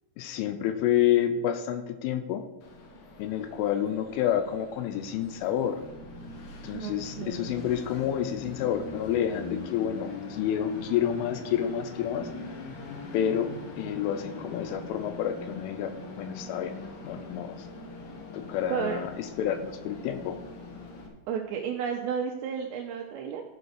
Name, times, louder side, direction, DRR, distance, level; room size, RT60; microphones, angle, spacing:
voice 1, 0.2-2.4 3.2-5.8 6.6-12.3 13.1-16.8 17.0-17.7 18.3-20.4, left 10 dB, 80° left, 9 dB, 3.1 m, -29 dB
Train, 2.6-21.1, left 3 dB, 60° left, 2.9 m, -42 dB
voice 2, 6.7-7.6 18.7-19.0 21.3-23.4, right 7 dB, 85° right, 1 dB, 2.6 m, -32 dB
14.0 x 5.2 x 6.4 m, 1.1 s
omnidirectional pair, 5.9 m